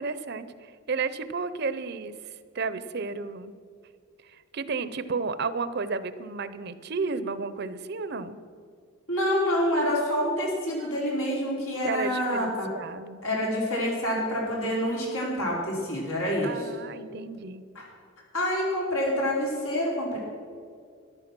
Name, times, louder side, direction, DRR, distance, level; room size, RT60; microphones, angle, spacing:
voice 1, 0.0-2.2 2.5-3.5 4.2-8.4 11.8-13.2 16.4-17.6, right 4 dB, 50° right, 13 dB, 0.6 m, -32 dB
voice 2, 9.1-12.7 13.2-16.7 17.7-17.9 18.3-20.2, equal, 90° left, -3 dB, 4.5 m, -27 dB
13.5 x 11.0 x 6.1 m, 2.2 s
head